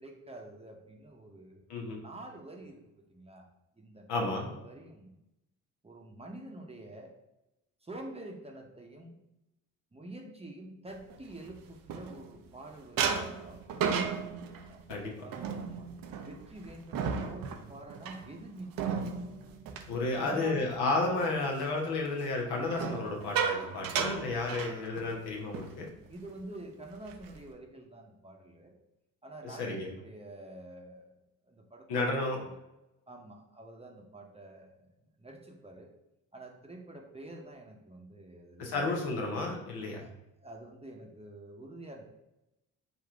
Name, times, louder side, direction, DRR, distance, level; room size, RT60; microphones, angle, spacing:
voice 1, 0.0-3.4 3.8-5.2 5.8-7.1 7.8-9.2 9.9-13.9 14.7-15.9 16.2-19.0 20.1-20.6 26.1-28.7 29.2-31.2 31.5-31.9 32.4-32.6 33.1-34.9 35.2-35.9 36.3-39.1 40.0-40.1 40.4-42.0, right 2 dB, 15° right, 0 dB, 0.9 m, -47 dB
voice 2, 4.1-4.5 14.9-15.1 19.9-25.9 29.4-29.9 31.9-32.4 38.6-40.0, left 2 dB, 65° left, 0 dB, 1.2 m, -32 dB
sound 1, 11.1-12.5 13.0-20.8 21.1-21.5 22.6-25.2 25.5-25.7 26.1-26.3 26.8-27.5, right 6 dB, 55° right, 0.7 m, -35 dB
4.0 x 2.5 x 4.5 m, 0.91 s
hypercardioid pair, 55°, 41 cm